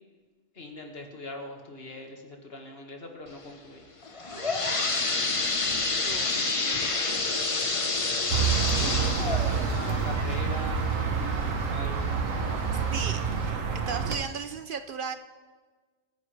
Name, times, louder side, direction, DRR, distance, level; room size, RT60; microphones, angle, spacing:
voice 1, 0.5-3.8 8.7-12.3, left 2 dB, 50° left, 2 dB, 2.0 m, -41 dB
sound 1, 4.0-11.6 12.1-12.2 12.9-13.0 13.5-13.6, left 3 dB, 30° left, 0.9 m, -29 dB
voice 2, 4.3-4.7 6.0-6.5 12.7-15.2, right 5 dB, 55° right, 9 dB, 0.6 m, -36 dB
sound 2, 8.3-14.2, right 6 dB, 80° right, 1.5 m, -28 dB
24.5 x 10.0 x 3.3 m, 1.4 s
omnidirectional pair, 1.3 m